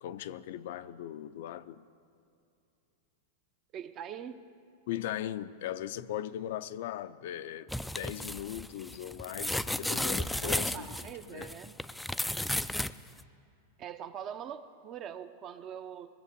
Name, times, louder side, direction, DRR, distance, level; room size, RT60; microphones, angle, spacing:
voice 1, 0.0-1.8 4.9-11.5, left 11 dB, 65° left, 0.4 m, -39 dB
voice 2, 3.7-4.4 10.4-11.8 13.8-16.1, right 8 dB, 35° right, 0.7 m, -43 dB
sound 1, 7.7-12.9 13.2-13.3, left 1 dB, 5° left, 0.3 m, -34 dB
20.5 x 7.6 x 6.8 m
hypercardioid pair, 125°, 0 cm